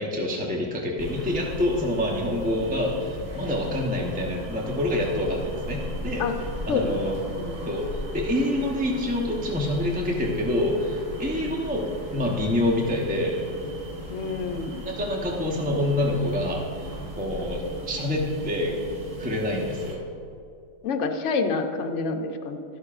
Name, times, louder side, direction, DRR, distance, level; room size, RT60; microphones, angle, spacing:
voice 1, 0.0-6.2 6.7-7.1 7.6-13.4 14.8-18.7 19.2-20.0, left 1 dB, 10° right, -2 dB, 0.6 m, -27 dB
sound 1, 1.0-20.0, equal, 50° right, 1.8 m, -37 dB
voice 2, 6.7-7.0 7.3-7.7 14.1-14.8 20.8-22.6, left 4 dB, 55° left, 4 dB, 1.0 m, -28 dB
12.5 x 12.0 x 2.5 m, 2.6 s
omnidirectional pair, 1.8 m